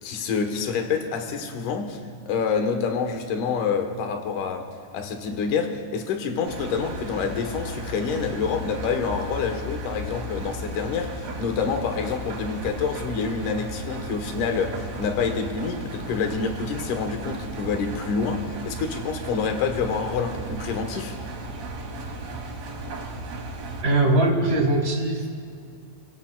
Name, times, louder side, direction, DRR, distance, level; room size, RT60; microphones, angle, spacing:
voice 1, 0.0-2.0 2.3-21.1, left 5 dB, 65° left, 5 dB, 2.1 m, -27 dB
Engine, 6.5-23.8, right 1 dB, 60° right, 1.8 m, -35 dB
voice 2, 23.8-25.3, right 2 dB, 25° right, -2 dB, 2.4 m, -21 dB
30.0 x 16.5 x 2.4 m, 2.3 s
omnidirectional pair, 5.3 m